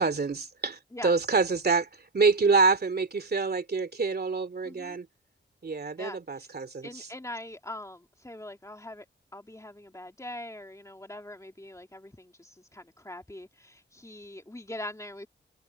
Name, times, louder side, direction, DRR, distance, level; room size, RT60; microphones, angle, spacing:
voice 1, 0.0-1.9 2.1-5.1 5.6-6.9, right 4 dB, 55° right, 2.6 m, -26 dB
voice 2, 4.6-5.0 6.0-6.4 6.8-9.1 9.3-15.3, left 1 dB, 15° left, 2.4 m, -42 dB
wide cardioid pair, 90°, 19 cm